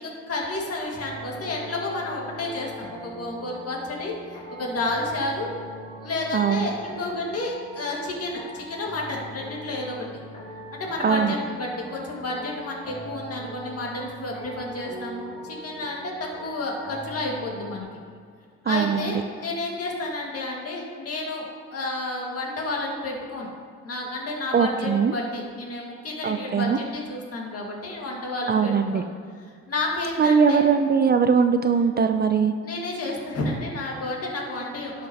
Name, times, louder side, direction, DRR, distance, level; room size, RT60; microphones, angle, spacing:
voice 1, 0.0-5.6 6.0-10.1 10.7-17.9 18.6-21.5 21.7-23.5 23.8-29.1 29.7-30.6 32.6-35.1, left 2 dB, 50° left, -2 dB, 1.9 m, -31 dB
sound 1, 0.9-17.8, right 1 dB, 25° left, 1.9 m, -41 dB
voice 2, 6.3-6.7 11.0-11.4 18.7-19.2 24.5-25.1 26.2-26.8 28.5-29.0 30.2-32.5, right 6 dB, 35° right, 8 dB, 0.4 m, -21 dB
11.0 x 5.9 x 2.9 m, 2.1 s
cardioid pair, 90°, 30 cm